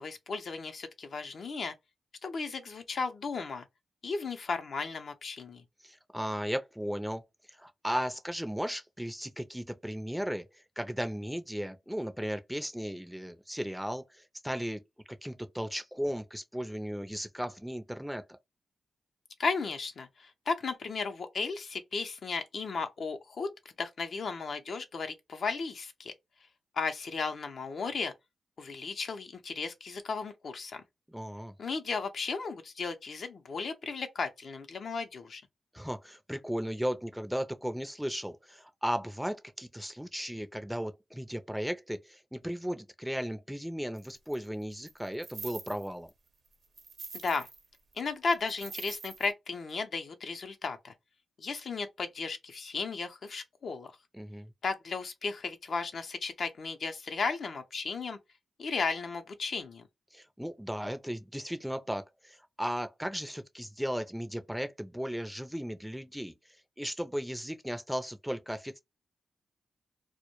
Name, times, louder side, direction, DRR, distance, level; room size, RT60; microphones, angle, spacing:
voice 1, 0.0-1.7 2.2-3.7 4.0-5.6 19.4-26.1 26.7-28.1 28.6-30.8 31.6-35.4 47.1-47.5 47.9-50.9 51.4-53.9 54.6-58.2 58.6-59.9, left 4 dB, 65° left, 0.5 m, -35 dB
voice 2, 5.8-14.8 15.1-18.4 31.1-31.5 35.7-46.1 54.1-54.5 60.1-66.3 66.8-68.8, equal, 5° right, 0.4 m, -36 dB
sound 1, 44.0-44.3 44.9-46.1 46.5-47.7 47.9-48.0 48.3-49.3, right 4 dB, 70° right, 0.7 m, -44 dB
2.1 x 2.1 x 2.9 m
cardioid pair, 65°, 0 cm